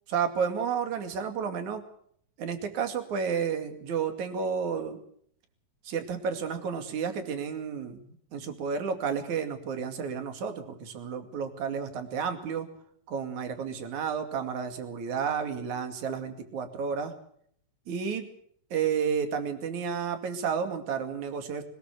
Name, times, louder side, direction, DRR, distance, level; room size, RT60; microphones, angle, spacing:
voice 1, 0.1-1.8 2.4-5.0 5.9-12.7 13.1-17.1 17.9-18.3 18.7-21.6, right 6 dB, 60° right, 7 dB, 3.6 m, -31 dB
21.5 x 20.5 x 6.4 m, 0.64 s
omnidirectional pair, 4.1 m